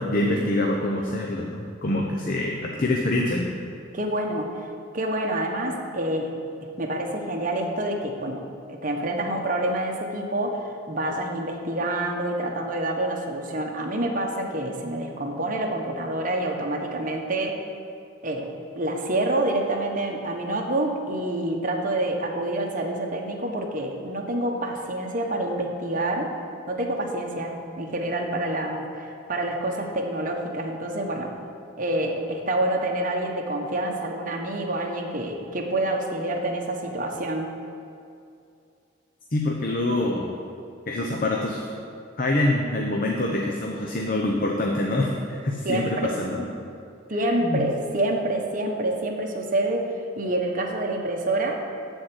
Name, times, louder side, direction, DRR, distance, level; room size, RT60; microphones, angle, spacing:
voice 1, 0.0-3.5 39.3-40.3 40.9-41.6 42.2-46.5 47.4-47.7, left 1 dB, 45° left, 0 dB, 0.8 m, -25 dB
voice 2, 3.9-4.5 4.9-6.3 6.8-8.4 8.7-17.6 18.2-26.3 26.7-31.3 31.8-37.5 45.6-46.1 47.1-49.9 50.2-51.6, right 1 dB, 40° right, 2 dB, 1.2 m, -27 dB
13.0 x 4.6 x 8.0 m, 2.4 s
head